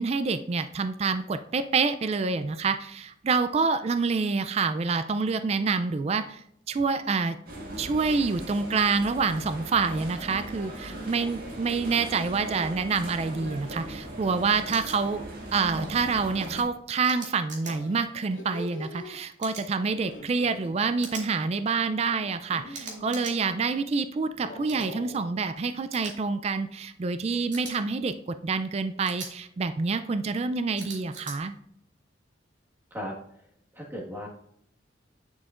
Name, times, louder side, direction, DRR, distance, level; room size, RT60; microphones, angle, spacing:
voice 1, 0.0-6.4 6.7-7.4 7.8-15.2 15.5-31.5, right 4 dB, 35° right, 11 dB, 0.3 m, -27 dB
sound 1, 6.9-7.3 7.7-8.2 9.9-11.2 13.2-14.6 16.0-16.4 17.6-19.2 19.9-20.7 22.2-23.3 24.3-25.3, equal, 75° left, 2.2 m, -45 dB
sound 2, 7.5-16.6, right 1 dB, 50° right, 2.0 m, -39 dB
sound 3, 14.7-15.0 17.0-17.7 19.4-19.7 21.0-21.3 22.7-23.4 24.7-24.9 25.9-26.1 27.5-27.7 29.0-29.3 30.8-31.4, right 4 dB, 75° right, 2.5 m, -40 dB
voice 2, 32.9-33.4 33.7-34.3, equal, 10° right, -2 dB, 1.6 m, -37 dB
10.0 x 6.3 x 2.5 m, 0.71 s
head